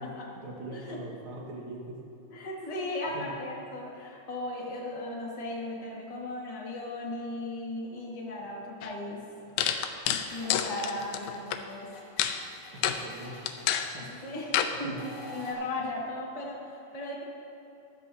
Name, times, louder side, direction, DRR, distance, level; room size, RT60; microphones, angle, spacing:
voice 1, 0.4-2.0 3.1-3.3 12.7-13.5 13.9-14.1 14.8-15.0, right 1 dB, 45° right, -3 dB, 2.2 m, -42 dB
voice 2, 2.3-9.2 10.3-11.9 13.8-17.2, left 2 dB, 20° left, -5 dB, 0.9 m, -37 dB
sound 1, 8.8-8.9 9.6-11.6 12.2-12.4 12.8-13.0 13.5-13.9 14.5-14.7, left 10 dB, 85° left, 2.3 m, -28 dB
sound 2, 10.0-15.5, left 2 dB, 55° left, 3.2 m, -49 dB
15.5 x 12.0 x 2.8 m, 2.8 s
omnidirectional pair, 4.1 m